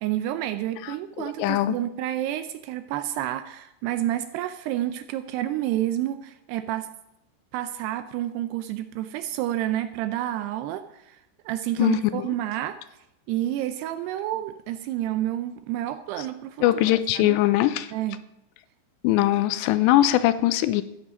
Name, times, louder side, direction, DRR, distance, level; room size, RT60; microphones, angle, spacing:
voice 1, 0.0-6.9 7.5-11.1 11.5-12.8 13.3-16.6 16.9-17.4 17.9-18.2, right 13 dB, 80° right, 10 dB, 2.5 m, -29 dB
voice 2, 0.8-1.8 11.8-12.2 16.6-17.9 19.0-20.8, left 14 dB, 80° left, 13 dB, 2.6 m, -21 dB
13.5 x 9.7 x 5.2 m, 0.86 s
omnidirectional pair, 5.1 m